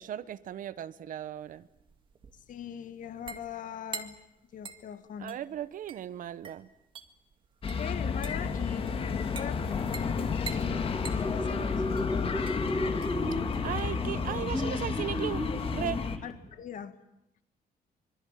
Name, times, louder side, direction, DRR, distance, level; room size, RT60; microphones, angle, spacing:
voice 1, 0.0-1.7 5.2-6.7 13.6-15.4 15.7-16.0, right 11 dB, 60° right, 1.0 m, -36 dB
sound 1, 1.4-15.4, right 5 dB, 30° right, 1.9 m, -47 dB
voice 2, 2.5-4.2 4.5-5.4 7.8-12.4 16.2-17.0, left 9 dB, 55° left, 1.7 m, -42 dB
sound 2, 7.6-16.2, left 5 dB, 35° left, 1.8 m, -32 dB
sound 3, 10.0-16.5, left 1 dB, 5° left, 2.3 m, -35 dB
26.0 x 23.5 x 9.0 m
cardioid pair, 170°, 16 cm